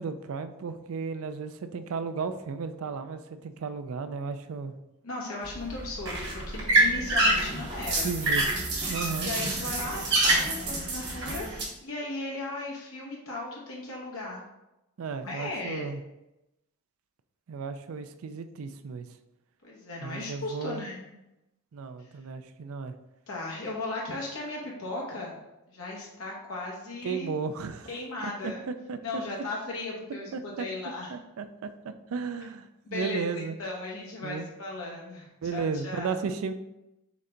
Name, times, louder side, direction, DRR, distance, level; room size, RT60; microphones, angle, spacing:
voice 1, 0.0-4.7 8.0-8.4 8.9-9.3 15.0-16.0 17.5-19.1 20.0-20.9 21.7-22.9 27.0-27.9 28.4-29.0 30.3-30.7 31.1-33.5 34.2-34.5 35.4-36.5, right 5 dB, 70° right, 9 dB, 0.4 m, -34 dB
voice 2, 5.0-8.1 9.2-14.4 15.2-15.9 19.6-21.1 22.0-22.1 23.3-25.4 25.7-27.3 27.8-28.6 29.0-31.1 32.8-36.1, left 2 dB, 70° left, -3 dB, 0.9 m, -36 dB
sound 1, 5.4-11.6, right 2 dB, 50° right, 1.4 m, -27 dB
4.1 x 3.3 x 3.8 m, 0.93 s
head